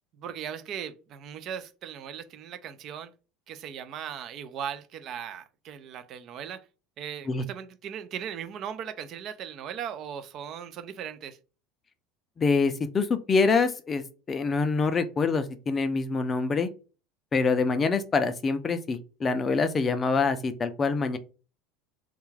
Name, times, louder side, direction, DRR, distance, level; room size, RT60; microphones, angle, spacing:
voice 1, 0.2-3.1 3.5-6.6 7.0-11.4, right 8 dB, 50° right, 0.4 m, -38 dB
voice 2, 12.4-16.7 17.3-21.2, left 4 dB, 30° left, 0.4 m, -25 dB
2.4 x 2.2 x 3.1 m
supercardioid pair, 105°, 0 cm